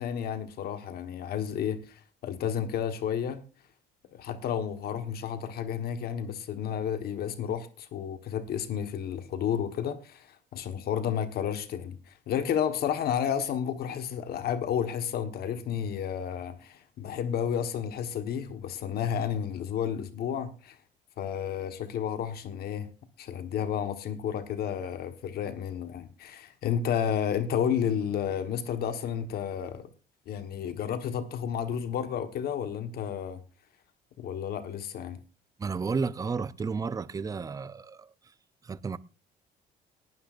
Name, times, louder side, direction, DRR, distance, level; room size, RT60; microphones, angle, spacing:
voice 1, 0.0-3.4 4.1-20.8 21.2-22.9 23.2-29.9 30.3-33.4 34.2-35.2, left 8 dB, 65° left, 1.3 m, -31 dB
voice 2, 35.6-38.3 38.6-39.0, right 5 dB, 20° right, 0.6 m, -32 dB
19.0 x 12.0 x 2.5 m
cardioid pair, 110°, 17 cm